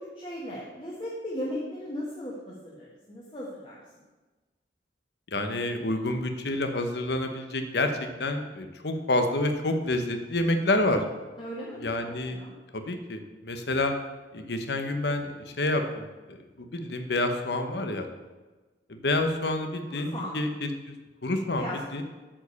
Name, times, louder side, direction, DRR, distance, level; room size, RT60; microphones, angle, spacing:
voice 1, 0.0-3.8 11.4-12.5 19.9-20.4 21.6-21.8, equal, 30° left, -5 dB, 1.5 m, -37 dB
voice 2, 5.3-11.0 11.8-12.4 12.7-13.9 14.3-18.1 18.9-21.0 21.2-22.0, left 2 dB, 65° left, 6 dB, 1.0 m, -28 dB
8.7 x 5.0 x 7.0 m, 1.2 s
head